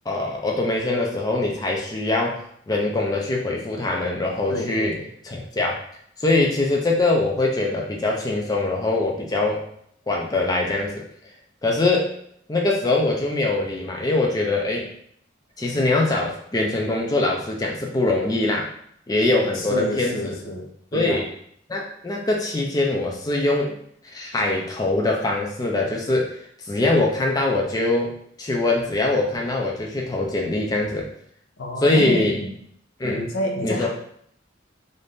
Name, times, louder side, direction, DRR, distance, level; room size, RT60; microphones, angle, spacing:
voice 1, 0.1-2.4 2.7-4.9 5.2-5.8 6.2-9.6 10.1-11.0 11.6-12.1 12.5-14.9 15.6-18.7 19.1-20.4 20.9-21.3 21.7-23.8 24.1-26.3 26.7-31.0 31.8-32.3 33.0-33.2 33.6-33.9, left 2 dB, 20° left, -1 dB, 0.4 m, -23 dB
voice 2, 4.5-5.1 19.5-21.3 31.6-32.5 33.1-33.9, left 1 dB, 90° left, 1 dB, 0.7 m, -29 dB
2.6 x 2.5 x 3.5 m, 0.67 s
head